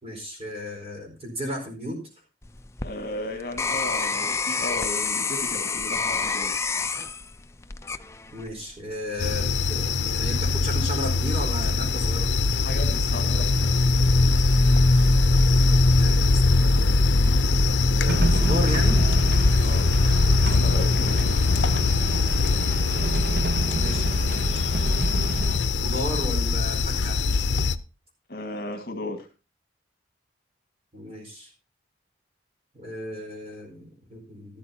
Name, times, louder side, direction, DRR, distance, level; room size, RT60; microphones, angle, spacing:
voice 1, 0.0-2.0 8.3-12.3 16.0-17.0 18.0-19.0 23.7-24.6 25.8-27.2 30.9-31.5 32.7-34.6, equal, 35° right, 1 dB, 4.6 m, -34 dB
sound 1, 2.4-8.6 9.2-9.6, left 4 dB, 15° left, 0.5 m, -28 dB
voice 2, 2.8-6.5 12.6-13.7 19.6-19.9 20.5-21.3 23.0-23.1 28.3-29.3, left 2 dB, 55° left, 5 dB, 1.8 m, -35 dB
sound 2, 9.2-27.8, left 3 dB, 75° left, 0.6 m, -21 dB
sound 3, 18.1-25.6, right 2 dB, 55° right, 0.8 m, -30 dB
13.0 x 12.5 x 2.8 m, 0.32 s
head